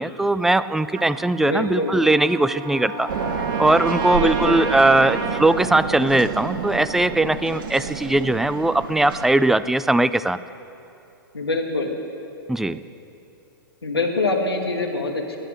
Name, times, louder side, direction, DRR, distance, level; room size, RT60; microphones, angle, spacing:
voice 1, 0.0-3.1 3.6-10.4 12.5-12.8, right 2 dB, 5° right, 14 dB, 0.3 m, -20 dB
Trumpet, 0.9-5.5, right 6 dB, 30° right, 1.4 m, -32 dB
voice 2, 1.4-1.9 4.1-4.6 11.3-11.9 13.8-15.4, left 2 dB, 85° left, 2 dB, 1.7 m, -24 dB
Wind instrument woodwind instrument, 2.5-7.9, left 10 dB, 45° left, 0.9 m, -40 dB
sound 1, 3.1-9.3, right 6 dB, 60° right, 1.3 m, -29 dB
18.0 x 10.0 x 7.4 m, 2.8 s
figure-of-eight pair, 110°, 12 cm